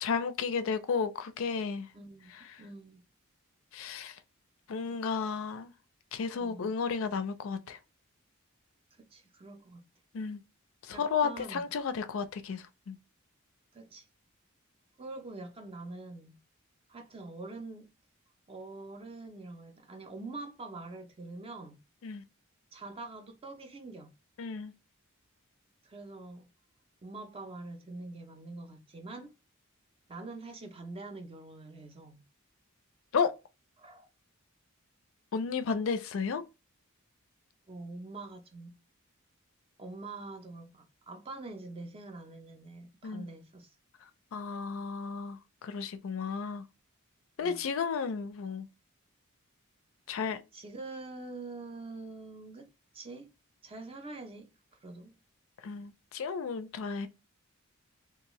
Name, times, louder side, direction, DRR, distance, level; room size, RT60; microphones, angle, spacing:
voice 1, 0.0-1.9 2.3-2.6 3.7-4.2 4.7-5.7 6.1-7.8 10.1-10.4 10.8-13.0 22.0-22.2 24.4-24.7 33.1-33.3 35.3-36.4 43.0-43.3 44.3-46.6 47.4-48.7 50.1-50.4 55.6-57.1, left 5 dB, 65° left, 0.4 m, -33 dB
voice 2, 1.9-3.0 6.4-6.7 8.9-9.9 10.9-11.7 13.7-14.0 15.0-16.4 16.9-17.9 18.5-21.8 22.7-24.1 25.8-26.5 27.0-29.3 30.1-32.2 33.8-34.1 37.7-38.8 39.8-43.7 47.4-47.6 50.5-52.7 52.9-53.3 53.6-55.2, right 2 dB, 25° right, 0.5 m, -45 dB
2.7 x 2.3 x 3.0 m
head